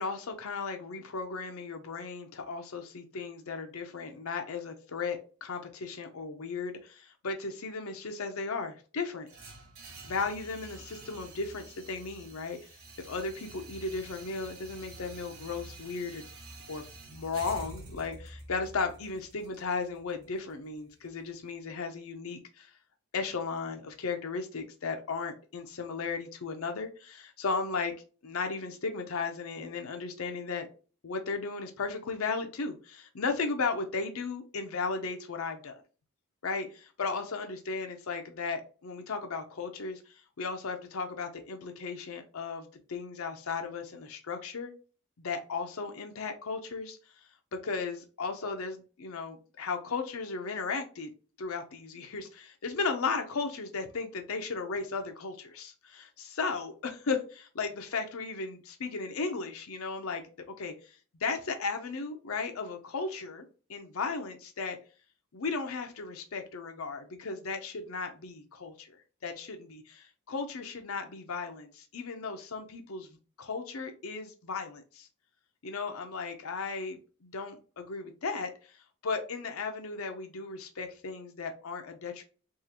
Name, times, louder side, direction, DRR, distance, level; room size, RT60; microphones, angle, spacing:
voice 1, 0.0-9.3 10.0-12.6 13.0-16.2 16.7-22.7 23.1-27.9 28.2-30.7 31.0-35.8 36.4-44.7 45.2-47.0 47.5-51.1 51.4-60.2 60.6-63.4 63.7-64.8 65.3-73.1 73.4-75.1 75.6-82.2, left 4 dB, 80° left, 5 dB, 0.6 m, -35 dB
sound 1, 9.3-21.3, right 2 dB, 80° right, 1.1 m, -48 dB
3.7 x 2.4 x 2.8 m, 0.36 s
head